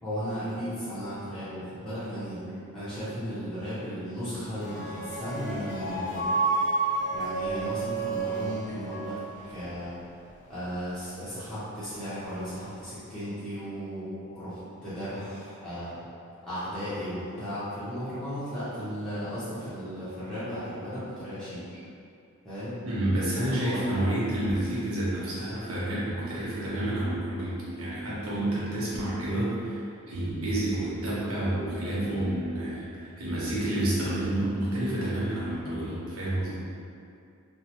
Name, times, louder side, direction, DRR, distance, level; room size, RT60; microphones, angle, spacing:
voice 1, 0.0-2.4 2.7-6.3 7.1-9.2 9.5-10.0 10.5-16.0 16.4-21.6 22.4-22.8 23.5-24.0, equal, ahead, -16 dB, 0.7 m, -35 dB
sound 1, 4.5-9.9, right 3 dB, 55° left, 0.5 m, -30 dB
voice 2, 22.8-29.8 30.1-36.5, right 1 dB, 85° right, -8 dB, 0.9 m, -29 dB
3.1 x 2.0 x 2.8 m, 2.5 s
head